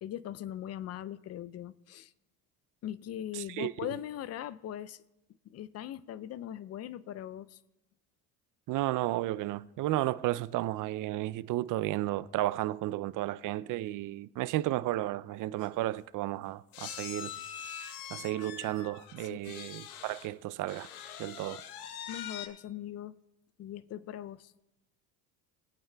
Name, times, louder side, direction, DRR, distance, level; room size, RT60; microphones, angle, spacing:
voice 1, 0.0-2.1 2.8-5.0 5.5-7.6 19.2-19.6 22.1-23.1 23.6-24.5, left 11 dB, 40° left, 0.4 m, -40 dB
voice 2, 3.3-3.9 8.7-17.3 18.1-20.9 21.2-21.6, right 15 dB, 50° right, 0.4 m, -33 dB
sound 1, 15.3-15.4 15.6-15.8 16.7-20.3 20.7-22.5, left 9 dB, 90° left, 1.0 m, -43 dB
20.5 x 8.7 x 2.2 m
hypercardioid pair, 75°, 43 cm